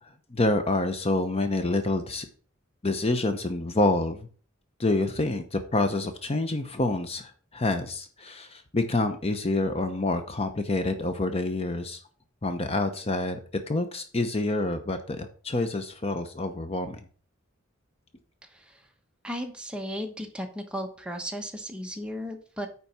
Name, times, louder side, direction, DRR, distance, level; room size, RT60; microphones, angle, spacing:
voice 1, 0.0-2.3 2.8-4.3 4.8-12.0 12.4-13.4 13.7-17.0, left 2 dB, 30° left, 8 dB, 0.8 m, -27 dB
voice 2, 18.5-18.8 19.2-22.7, equal, 5° right, 3 dB, 1.1 m, -35 dB
9.3 x 4.2 x 5.6 m, 0.41 s
head